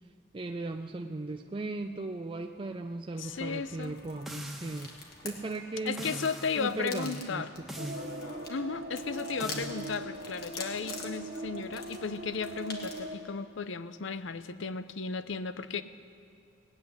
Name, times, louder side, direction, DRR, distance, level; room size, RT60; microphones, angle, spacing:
voice 1, 0.3-5.0 5.2-6.2 6.6-8.0, right 2 dB, 25° right, 5 dB, 0.4 m, -37 dB
voice 2, 3.2-4.0 5.8-7.5 8.5-15.8, left 5 dB, 70° left, 13 dB, 0.6 m, -35 dB
sound 1, 3.2-13.1, left 3 dB, 50° left, 1.9 m, -46 dB
sound 2, 4.3-5.0 6.0-6.7 7.7-8.3 9.4-9.7, equal, ahead, 1.3 m, -42 dB
sound 3, 7.8-13.2, right 2 dB, 50° right, 0.9 m, -41 dB
18.5 x 7.9 x 9.6 m, 2.6 s
head